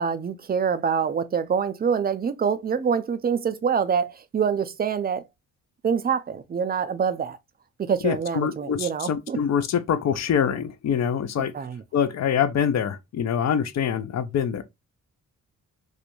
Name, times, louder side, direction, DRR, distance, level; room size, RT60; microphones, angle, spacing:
voice 1, 0.0-5.3 5.8-7.4 7.8-9.4 11.4-11.8, right 6 dB, 30° right, 0.4 m, -25 dB
voice 2, 8.0-11.5 11.9-14.6, left 8 dB, 50° left, 0.5 m, -25 dB
2.4 x 2.1 x 2.9 m
cardioid pair, 60°, 35 cm